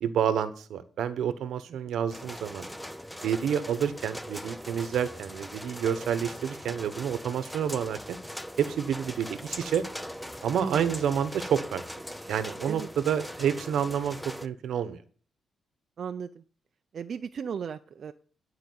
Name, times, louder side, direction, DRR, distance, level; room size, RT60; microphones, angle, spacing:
voice 1, 0.0-2.7 3.2-8.2 8.6-9.9 10.4-11.8 12.3-15.0, right 8 dB, 80° right, 12 dB, 1.0 m, -29 dB
sound 1, 2.1-14.5, equal, 5° left, 0.6 m, -41 dB
voice 2, 10.6-10.9 12.7-12.9 16.0-16.4 16.9-18.1, right 7 dB, 55° right, 8 dB, 0.5 m, -35 dB
11.0 x 4.9 x 7.9 m, 0.43 s
cardioid pair, 105°, 0 cm